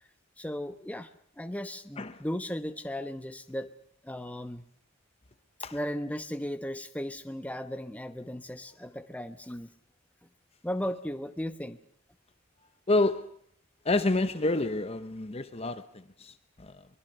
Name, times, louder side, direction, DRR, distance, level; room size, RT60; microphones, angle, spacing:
voice 1, 0.4-1.1 1.4-3.7 4.0-4.6 5.7-9.7 10.6-11.8, equal, 5° left, 1.1 m, -36 dB
voice 2, 12.9-13.3 13.8-16.9, left 2 dB, 30° left, 0.9 m, -29 dB
24.0 x 21.5 x 6.7 m
head